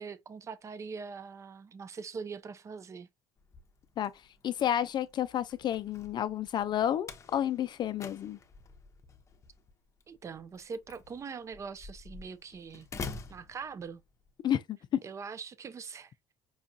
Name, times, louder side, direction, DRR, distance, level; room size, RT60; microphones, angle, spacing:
voice 1, 0.0-3.1 10.1-12.9 13.3-14.0 15.0-16.1, right 5 dB, 30° right, 0.5 m, -42 dB
Slam, 3.4-14.3, left 4 dB, 30° left, 0.8 m, -48 dB
voice 2, 4.4-8.4 14.4-15.0, left 10 dB, 45° left, 0.4 m, -30 dB
5.4 x 2.3 x 2.6 m
supercardioid pair, 100°, 11 cm